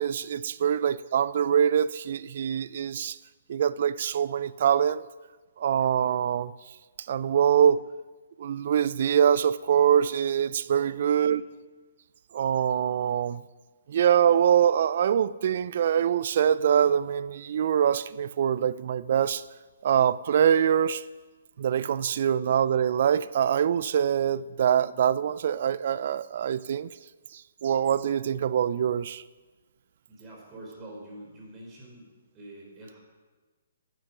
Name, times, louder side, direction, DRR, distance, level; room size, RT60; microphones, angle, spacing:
voice 1, 0.0-3.2 3.5-5.0 5.6-6.5 7.1-7.8 8.4-11.4 12.3-13.4 13.9-19.4 19.8-21.0 21.6-26.9 27.3-29.2, right 9 dB, 55° right, 0.3 m, -24 dB
voice 2, 10.7-11.4 30.1-33.0, right 1 dB, 20° right, 3.5 m, -46 dB
10.0 x 8.0 x 5.9 m
hypercardioid pair, 150°, 0 cm